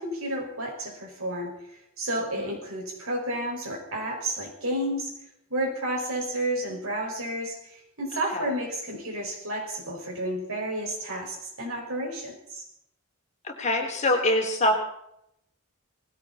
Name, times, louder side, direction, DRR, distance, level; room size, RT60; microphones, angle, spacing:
voice 1, 0.0-5.1 5.5-12.6, right 1 dB, 80° right, 1 dB, 5.7 m, -31 dB
voice 2, 13.4-14.8, left 1 dB, 35° left, 2 dB, 3.3 m, -24 dB
19.5 x 16.0 x 4.3 m, 0.76 s
head